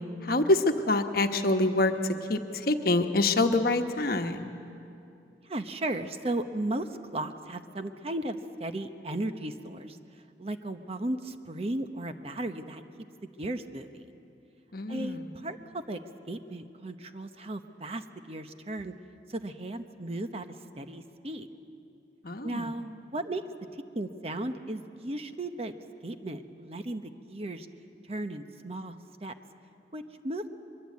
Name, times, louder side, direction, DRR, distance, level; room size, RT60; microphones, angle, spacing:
voice 1, 0.2-1.9 2.3-4.5 14.7-15.3 22.2-22.7, left 2 dB, 55° left, 6 dB, 1.2 m, -26 dB
voice 2, 5.4-10.0 10.4-12.8 13.4-14.2 14.9-16.0 16.3-18.9 19.3-20.5 20.8-21.5 22.4-23.4 23.9-25.7 26.0-27.7 28.1-29.0 29.2-29.3 29.9-30.5, right 1 dB, 35° right, 8 dB, 0.9 m, -35 dB
23.0 x 22.5 x 8.5 m, 2.6 s
head